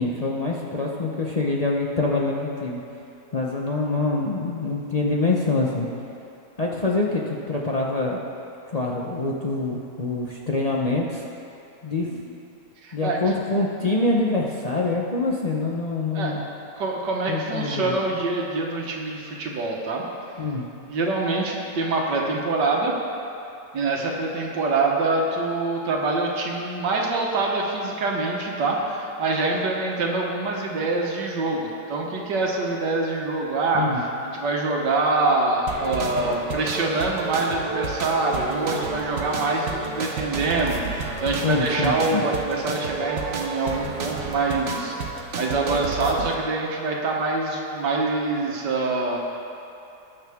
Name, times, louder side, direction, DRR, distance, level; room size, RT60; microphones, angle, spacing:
voice 1, 0.0-2.8 3.3-5.9 6.6-8.2 8.7-11.3 11.8-12.1 12.9-16.4 17.3-18.0 20.4-20.6 33.7-34.0 41.4-42.2, left 3 dB, 40° left, -3 dB, 0.5 m, -25 dB
voice 2, 12.8-13.2 16.1-16.3 16.8-20.0 20.9-23.0 23.7-34.1 34.3-49.2, right 3 dB, 85° right, -1 dB, 1.8 m, -25 dB
sound 1, 35.7-46.3, right 4 dB, 50° right, 1.1 m, -31 dB
19.0 x 6.5 x 3.5 m, 2.7 s
omnidirectional pair, 1.8 m